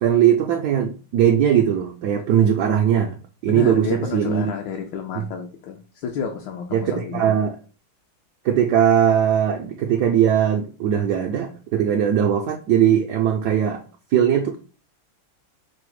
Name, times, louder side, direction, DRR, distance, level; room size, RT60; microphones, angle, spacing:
voice 1, 0.0-3.2 3.4-4.5 5.1-5.2 6.7-7.6 8.4-13.8 14.1-14.6, right 9 dB, 75° right, 4 dB, 0.9 m, -19 dB
voice 2, 3.5-7.3, left 6 dB, 75° left, 2 dB, 1.3 m, -30 dB
5.0 x 2.0 x 4.7 m, 0.36 s
omnidirectional pair, 2.1 m